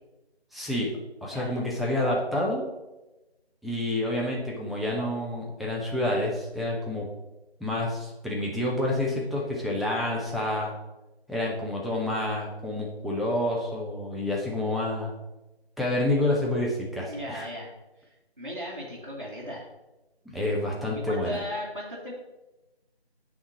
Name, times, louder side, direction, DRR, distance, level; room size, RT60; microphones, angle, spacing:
voice 1, 0.5-0.9 1.2-2.7 3.6-7.1 7.6-10.7 11.3-15.1 15.8-17.5 20.3-21.4, left 1 dB, ahead, -4 dB, 0.5 m, -28 dB
voice 2, 17.1-17.7 18.4-19.6 20.9-22.1, equal, 30° right, -9 dB, 1.1 m, -36 dB
9.2 x 3.5 x 3.9 m, 1.0 s
figure-of-eight pair, 175°, 32 cm